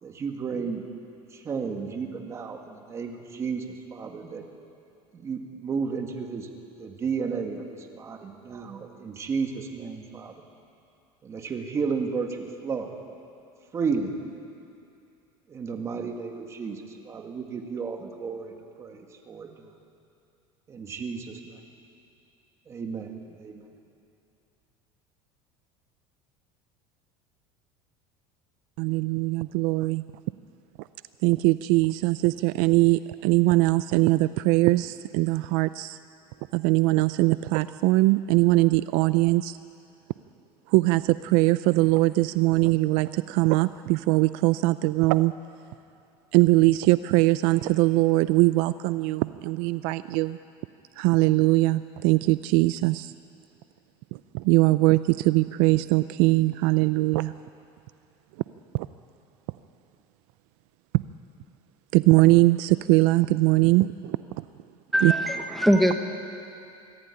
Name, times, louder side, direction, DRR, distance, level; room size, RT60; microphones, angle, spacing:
voice 1, 0.0-0.8 1.3-4.4 5.1-6.5 6.8-10.4 11.2-12.9 13.7-14.2 15.5-19.7 20.7-21.6 22.7-23.7, right 5 dB, 25° right, 4 dB, 2.0 m, -33 dB
voice 2, 28.8-30.0 31.2-36.0 36.5-39.6 40.7-45.3 46.3-50.4 51.0-53.1 54.3-57.3 58.7-58.9 61.9-64.2 65.0-65.1, right 20 dB, 65° right, 14 dB, 0.5 m, -21 dB
voice 3, 64.9-65.9, equal, ahead, 4 dB, 1.0 m, -21 dB
24.0 x 15.0 x 9.9 m, 2.7 s
cardioid pair, 155°, 12 cm